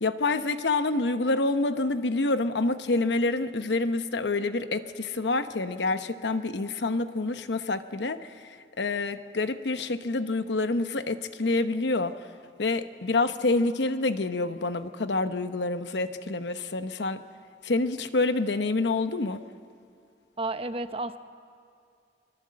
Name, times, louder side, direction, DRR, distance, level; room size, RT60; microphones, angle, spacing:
voice 1, 0.0-12.3 12.6-17.2 17.6-19.4, left 3 dB, 75° left, 10 dB, 0.9 m, -27 dB
voice 2, 20.4-21.2, right 2 dB, 35° right, 10 dB, 0.8 m, -31 dB
24.5 x 19.5 x 7.6 m, 2.4 s
head